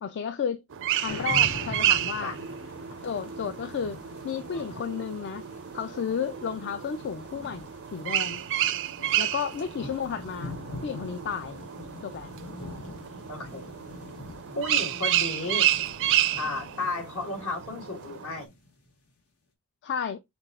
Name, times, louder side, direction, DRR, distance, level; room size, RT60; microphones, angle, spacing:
voice 1, 0.0-0.6 1.0-2.4 3.0-5.5 5.7-8.4 9.2-10.6 10.8-11.6 12.0-12.3 19.8-20.2, left 7 dB, 50° left, 0.3 m, -32 dB
sound 1, 0.7-18.4, right 12 dB, 60° right, 0.4 m, -30 dB
sound 2, 1.1-18.9, left 2 dB, 90° left, 1.5 m, -44 dB
voice 2, 13.3-13.7 14.5-15.7 16.4-18.5, left 2 dB, 70° left, 1.5 m, -34 dB
6.0 x 2.4 x 3.5 m
head